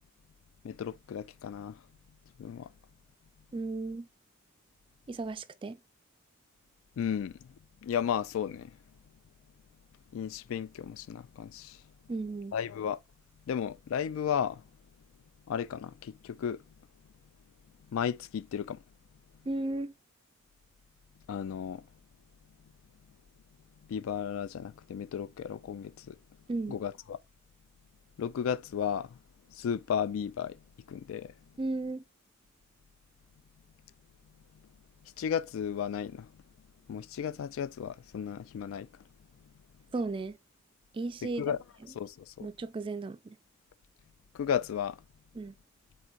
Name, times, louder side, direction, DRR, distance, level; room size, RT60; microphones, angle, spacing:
voice 1, 0.6-1.8 2.4-2.7 7.0-7.5 7.8-8.8 10.1-11.8 12.5-13.0 13.5-14.6 15.5-16.6 17.9-18.8 21.3-21.9 23.9-26.2 26.7-27.2 28.2-29.1 29.5-30.6 30.9-31.3 35.2-36.3 36.9-38.9 41.4-41.6 41.9-42.5 44.3-45.0, left 8 dB, 65° left, 0.3 m, -34 dB
voice 2, 3.5-4.1 5.1-5.8 12.1-12.5 19.5-19.9 26.5-26.8 31.6-32.0 39.9-40.4 40.9-41.5 42.4-43.4 45.3-45.5, right 2 dB, 25° right, 0.3 m, -35 dB
4.6 x 3.8 x 2.5 m
head